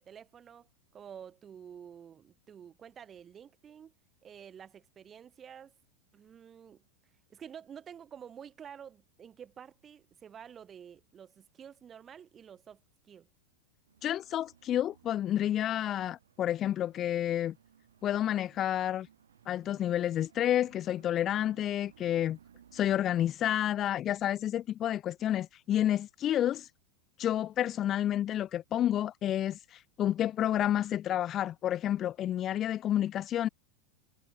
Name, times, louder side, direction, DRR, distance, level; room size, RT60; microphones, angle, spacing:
voice 1, 0.0-3.9 4.2-5.7 6.1-6.8 7.3-13.3, right 8 dB, 25° right, 5.3 m, -50 dB
sound 1, 13.9-23.0, right 9 dB, 65° right, 7.2 m, -62 dB
voice 2, 14.0-17.5 18.0-19.1 19.5-22.4 22.7-26.7 27.2-33.5, left 11 dB, 30° left, 0.4 m, -30 dB
figure-of-eight pair, 90°, 0 cm